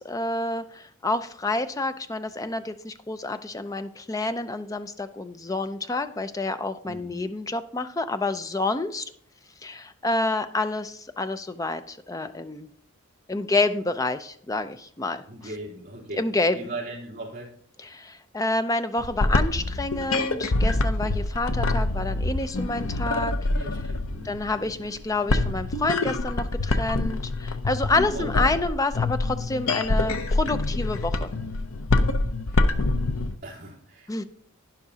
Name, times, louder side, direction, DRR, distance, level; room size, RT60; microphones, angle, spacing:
voice 1, 0.0-9.0 9.6-12.7 13.3-15.2 16.1-16.7 17.8-23.4 24.2-31.3 34.1-34.2, left 2 dB, 15° left, 10 dB, 0.4 m, -28 dB
voice 2, 6.8-7.2 15.3-16.2 16.5-17.5 23.5-24.4 28.1-28.7 32.5-32.6 33.4-34.3, right 2 dB, 40° right, -5 dB, 3.3 m, -39 dB
sound 1, 19.0-33.3, left 2 dB, 70° left, 0.6 m, -26 dB
11.5 x 10.0 x 2.8 m, 0.62 s
head